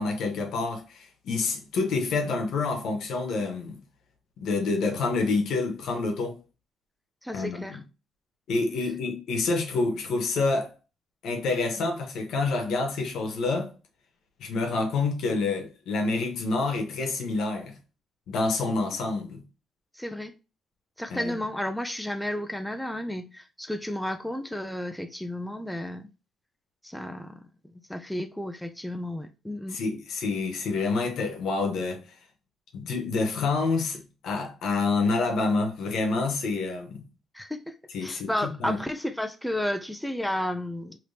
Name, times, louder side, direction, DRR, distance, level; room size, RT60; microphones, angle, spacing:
voice 1, 0.0-3.8 4.4-6.4 7.3-7.8 8.5-10.7 11.2-13.7 14.4-17.7 18.3-19.4 21.1-21.3 29.7-32.0 32.7-37.0 37.9-38.3 38.6-38.8, left 3 dB, 75° left, 1.0 m, -27 dB
voice 2, 7.2-7.8 19.9-20.3 21.0-26.1 26.8-27.5 27.9-29.8 37.3-37.7 38.0-41.0, left 1 dB, 5° left, 0.3 m, -32 dB
3.3 x 2.9 x 2.7 m
cardioid pair, 90°, 0 cm